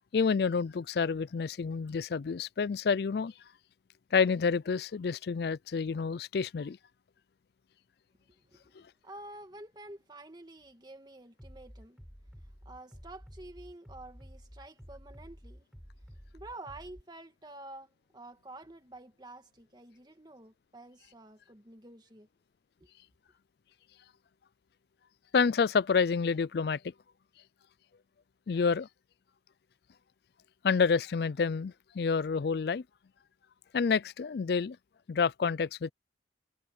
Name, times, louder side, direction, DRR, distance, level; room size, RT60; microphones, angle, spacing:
voice 1, 0.1-3.3 4.1-6.8 25.3-26.8 28.5-28.9 30.6-32.8 33.7-34.8 35.1-35.9, left 5 dB, 55° left, 0.4 m, -28 dB
voice 2, 8.3-12.0 12.7-15.7 16.3-22.3 22.8-22.9, right 2 dB, 20° right, 2.1 m, -49 dB
Bass drum, 11.4-17.0, equal, ahead, 6.6 m, -51 dB
head